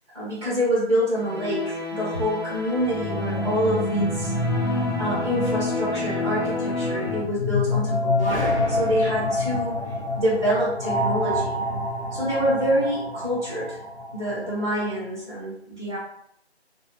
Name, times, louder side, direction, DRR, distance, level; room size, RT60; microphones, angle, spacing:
voice 1, 0.1-9.8 10.1-11.6 12.1-13.8 14.1-16.0, equal, 25° right, -9 dB, 0.9 m, -26 dB
sound 1, 1.1-7.2, left 3 dB, 5° right, 1.0 m, -30 dB
sound 2, 2.8-14.6, left 1 dB, 85° left, 0.9 m, -27 dB
sound 3, 8.2-12.6, equal, 25° left, 1.1 m, -36 dB
2.7 x 2.3 x 2.4 m, 0.73 s
figure-of-eight pair, 165°, 33 cm